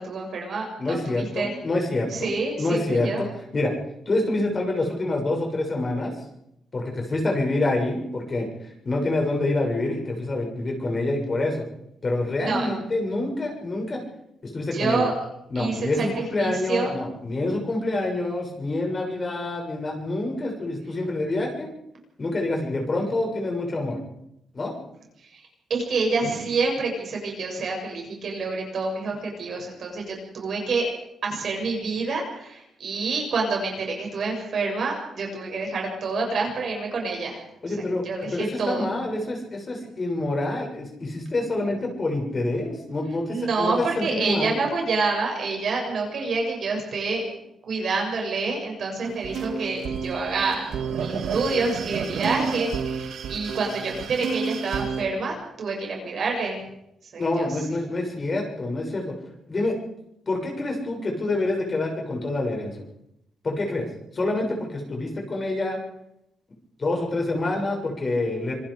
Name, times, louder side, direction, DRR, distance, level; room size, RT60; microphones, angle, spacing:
voice 1, 0.0-1.5 2.1-3.2 12.4-12.7 14.7-15.1 15.5-16.9 25.2-30.9 31.2-37.5 38.0-38.9 43.3-47.3 47.6-56.6 57.0-57.5, right 3 dB, 60° right, 1 dB, 7.4 m, -27 dB
voice 2, 0.8-3.3 3.5-3.7 4.0-6.1 6.7-8.5 8.8-11.6 12.0-14.0 14.4-15.1 15.5-21.7 22.2-24.0 24.5-24.7 37.6-44.6 57.2-59.1 59.5-59.7 60.3-62.8 63.4-63.8 64.1-65.8 66.8-68.5, left 2 dB, 35° left, 1 dB, 6.8 m, -27 dB
sound 1, 49.0-55.0, right 6 dB, 80° right, 2.3 m, -30 dB
26.5 x 20.0 x 5.1 m, 0.81 s
cardioid pair, 110°, 0 cm